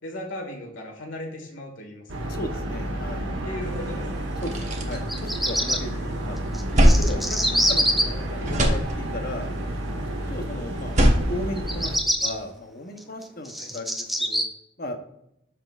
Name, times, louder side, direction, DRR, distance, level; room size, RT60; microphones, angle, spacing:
voice 1, 0.0-2.4 3.4-4.3 5.9-6.4 13.6-13.7, left 1 dB, 75° left, 1 dB, 1.8 m, -37 dB
sound 1, 2.1-12.0, right 1 dB, 75° right, 1.0 m, -31 dB
voice 2, 2.3-3.2 4.4-6.4 6.7-9.5 10.3-10.9 11.3-14.4 14.8-15.0, left 2 dB, 50° left, 6 dB, 0.8 m, -36 dB
sound 2, 3.8-3.9 4.2-5.9 6.3-8.1 8.4-9.4 10.7-12.4, equal, 35° right, 1.1 m, -23 dB
Bird vocalization bird call bird song, 4.9-5.8 6.5-8.0 11.6-12.3 13.0-14.4, equal, ahead, 0.5 m, -24 dB
12.0 x 4.0 x 2.4 m, 0.77 s
head